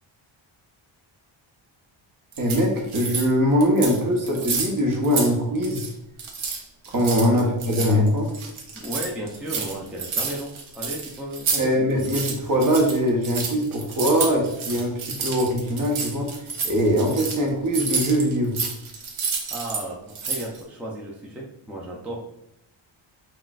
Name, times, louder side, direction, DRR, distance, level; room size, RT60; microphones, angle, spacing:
sound 1, 2.3-3.3 3.6-4.0 4.3-5.3 5.5-5.9 6.2-11.6 11.9-19.8 20.1-20.6, right 5 dB, 80° right, 0.9 m, -29 dB
voice 1, 2.4-5.9 6.9-8.3 11.6-16.3 16.6-18.6, equal, 45° right, -1 dB, 1.0 m, -22 dB
voice 2, 8.7-11.9 19.5-22.2, right 1 dB, 5° right, -3 dB, 0.4 m, -34 dB
5.9 x 2.4 x 2.4 m, 0.82 s
wide cardioid pair, 160°, 48 cm